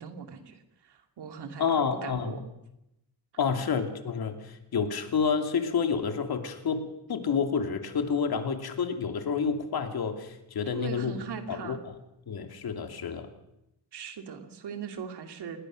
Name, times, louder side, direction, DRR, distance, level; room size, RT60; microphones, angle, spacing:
voice 1, 0.0-2.4 10.7-11.9 13.9-15.6, right 6 dB, 75° right, 6 dB, 2.7 m, -39 dB
voice 2, 1.6-2.4 3.4-11.1 11.5-11.9 12.3-13.3, left 6 dB, 60° left, 5 dB, 2.7 m, -29 dB
28.0 x 20.0 x 6.4 m, 0.86 s
wide cardioid pair, 155°, 41 cm